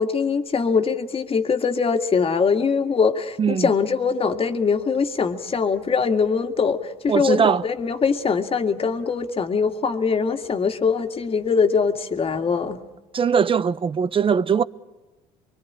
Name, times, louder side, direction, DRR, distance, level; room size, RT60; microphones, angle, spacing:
voice 1, 0.0-12.8, left 5 dB, 35° left, 2.0 m, -22 dB
voice 2, 3.4-3.7 7.1-7.6 13.1-14.6, right 6 dB, 35° right, 0.8 m, -20 dB
25.0 x 23.0 x 8.6 m
supercardioid pair, 70°, 15 cm